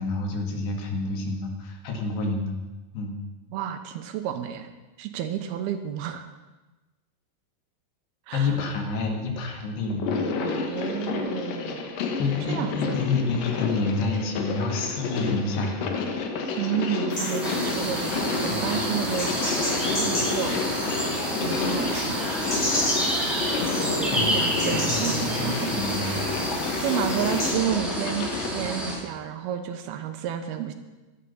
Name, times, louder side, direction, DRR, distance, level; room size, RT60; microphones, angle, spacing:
voice 1, 0.0-2.6 2.9-3.1 8.3-10.2 12.2-15.9 18.5-18.8 24.1-26.2, left 3 dB, 85° left, 2 dB, 4.2 m, -28 dB
voice 2, 3.5-4.7 5.0-6.2 8.3-8.6 10.4-12.0 12.5-13.0 16.6-19.4 19.9-20.6 21.4-22.3 23.8-25.7 26.8-30.7, right 10 dB, 75° right, 8 dB, 2.7 m, -31 dB
sound 1, 9.9-28.5, left 4 dB, 65° left, 2.7 m, -31 dB
sound 2, 17.1-27.5, left 1 dB, 30° left, 6.2 m, -31 dB
sound 3, 17.4-29.0, equal, ahead, 2.5 m, -29 dB
15.5 x 12.5 x 5.6 m, 1.1 s
omnidirectional pair, 4.8 m